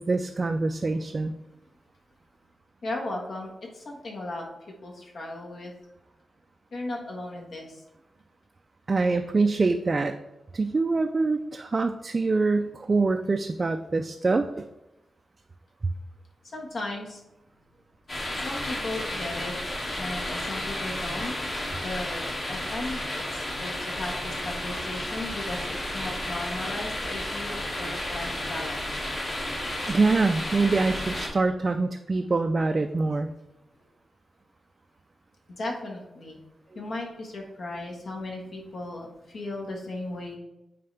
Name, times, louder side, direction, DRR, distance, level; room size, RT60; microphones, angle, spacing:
voice 1, 0.0-1.3 8.9-10.2 10.5-14.7 29.9-33.3, right 3 dB, 35° right, 6 dB, 0.3 m, -25 dB
voice 2, 2.8-4.4 4.8-5.7 6.7-7.8 16.5-17.2 18.4-19.5 20.0-21.6 21.8-22.2 22.5-28.9 35.6-36.4 36.7-40.4, left 2 dB, 65° left, -1 dB, 1.5 m, -36 dB
sound 1, 18.1-31.3, left 1 dB, 45° left, 2.0 m, -32 dB
9.1 x 3.9 x 3.3 m, 0.95 s
wide cardioid pair, 125°, 0 cm